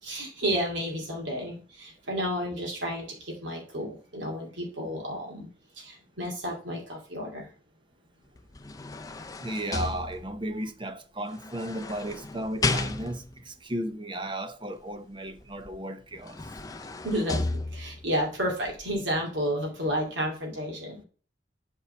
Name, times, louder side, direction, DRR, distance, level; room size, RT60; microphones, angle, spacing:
voice 1, 0.0-5.5 5.7-7.5 17.0-21.0, equal, 80° right, 2.5 m, -31 dB
sound 1, 8.4-10.6 11.4-13.4 15.7-15.8 16.1-18.1 18.7-18.8, left 3 dB, 20° left, 0.5 m, -33 dB
voice 2, 9.4-16.4, right 1 dB, 25° right, 0.7 m, -35 dB
8.5 x 4.6 x 5.1 m
head